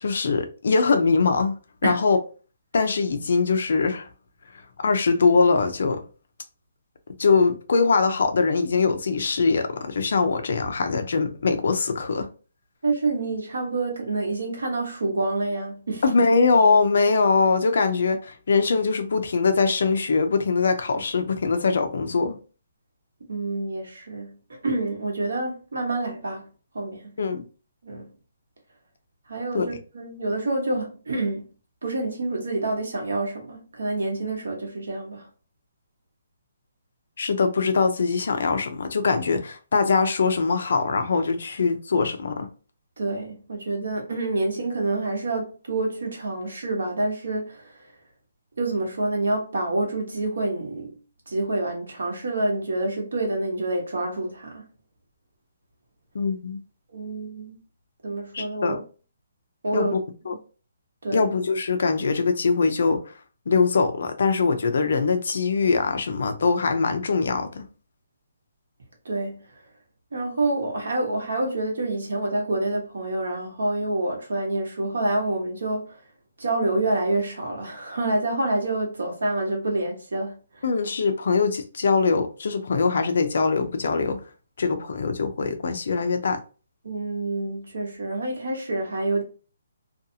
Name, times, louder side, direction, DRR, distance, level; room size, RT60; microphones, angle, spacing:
voice 1, 0.0-1.5 1.8-2.2 2.7-4.1 4.8-6.0 7.2-12.3 16.0-22.4 27.2-27.5 29.5-29.8 37.2-42.5 56.1-56.6 58.3-58.8 59.7-60.0 60.3-60.4 61.1-63.1 63.5-67.7 80.6-84.2 84.6-86.4, left 4 dB, 50° left, 0.5 m, -22 dB
voice 2, 12.8-16.0 23.3-26.5 26.7-27.2 27.8-28.1 29.3-31.4 31.8-35.3 43.0-47.9 48.6-50.9 51.3-54.7 56.9-57.5 58.0-58.8 59.6-59.9 61.0-61.3 69.0-69.5 70.1-76.0 76.4-80.6 86.8-89.2, right 2 dB, 85° right, 1.1 m, -27 dB
2.5 x 2.3 x 2.7 m
hypercardioid pair, 180°, 0 cm